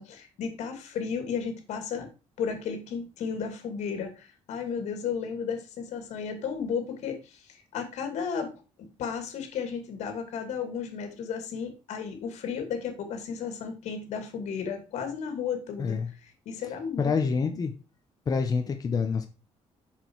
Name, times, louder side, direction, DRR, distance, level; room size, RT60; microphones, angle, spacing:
voice 1, 0.0-2.1 2.4-8.5 8.8-17.6, left 6 dB, 80° left, 6 dB, 2.5 m, -34 dB
voice 2, 15.8-16.1 17.0-17.7 18.3-19.3, left 5 dB, 35° left, 5 dB, 0.9 m, -27 dB
7.5 x 6.4 x 4.7 m, 0.31 s
cardioid pair, 135°, 12 cm